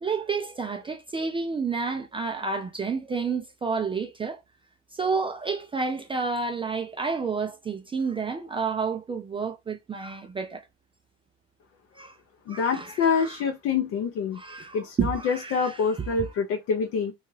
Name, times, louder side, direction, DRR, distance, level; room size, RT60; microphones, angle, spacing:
voice 1, 0.0-4.4 4.9-10.6 12.0-12.2 12.5-13.3 14.3-15.8, right 5 dB, 20° right, 0.3 m, -30 dB
voice 2, 12.5-14.4 14.7-17.1, left 5 dB, 55° left, 0.5 m, -26 dB
2.8 x 2.3 x 3.0 m
cardioid pair, 110°, 29 cm